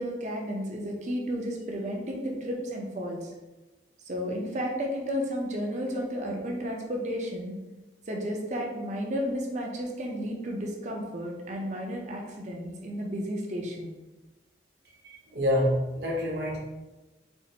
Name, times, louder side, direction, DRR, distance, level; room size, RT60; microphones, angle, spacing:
voice 1, 0.0-3.3 4.1-7.6 8.1-13.9, equal, 40° right, 0 dB, 0.5 m, -32 dB
voice 2, 15.0-16.6, equal, 60° right, -3 dB, 0.9 m, -27 dB
4.4 x 2.5 x 2.8 m, 1.1 s
head